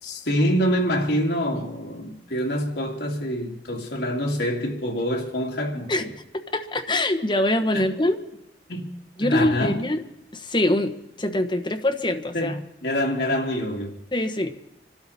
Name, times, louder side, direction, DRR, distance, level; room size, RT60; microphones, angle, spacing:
voice 1, 0.0-6.1 7.7-7.9 8.7-8.9 9.2-9.8 12.3-13.9, equal, 70° left, 2.6 m, -26 dB
voice 2, 6.5-8.2 9.2-10.0 10.3-12.5 14.1-14.5, left 1 dB, 25° left, 1.2 m, -24 dB
26.0 x 13.0 x 4.2 m
head